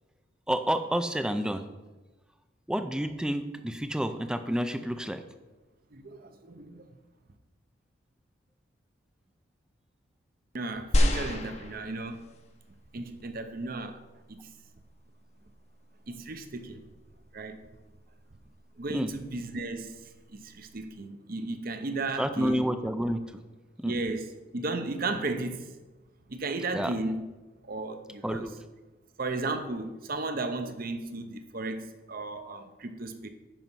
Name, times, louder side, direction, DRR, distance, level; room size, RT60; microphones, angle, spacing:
voice 1, 0.5-1.7 2.7-5.2 18.9-19.1 22.2-23.4 23.8-24.0 26.7-27.0 28.2-28.6, equal, 5° right, 9 dB, 0.4 m, -29 dB
voice 2, 5.9-6.8 10.5-12.2 12.9-14.0 14.3-14.5 16.1-16.8 17.3-17.6 18.8-19.9 20.3-22.6 23.8-24.3 24.5-25.7 26.3-27.3 27.6-28.4 29.2-33.3, right 2 dB, 45° right, 8 dB, 0.8 m, -34 dB
sound 1, 10.9-12.4 13.2-13.3, equal, 30° left, 0.8 m, -27 dB
9.1 x 5.4 x 6.1 m, 1.2 s
head